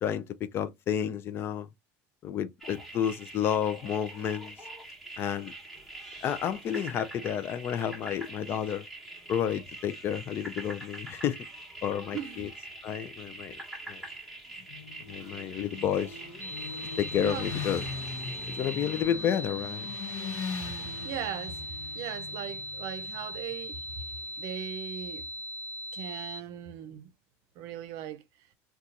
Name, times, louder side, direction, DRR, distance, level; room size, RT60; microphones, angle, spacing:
voice 1, 0.0-1.7 2.2-4.5 5.2-5.5 6.2-8.9 9.3-11.5 11.8-12.5 12.8-13.6 13.9-14.0 15.1-16.2 17.0-17.8 18.5-19.9, left 9 dB, 35° left, 0.4 m, -31 dB
sound 1, 2.6-19.0, right 2 dB, 5° left, 1.1 m, -44 dB
voice 2, 12.1-12.5 16.9-17.5 21.0-23.8 24.4-25.3 25.9-27.1 27.6-28.2, right 10 dB, 60° right, 0.6 m, -39 dB
Motorcycle, 14.6-24.4, left 5 dB, 60° left, 0.9 m, -41 dB
sound 2, 16.4-26.4, equal, 25° right, 1.2 m, -39 dB
2.7 x 2.3 x 3.7 m
cardioid pair, 160°, 7 cm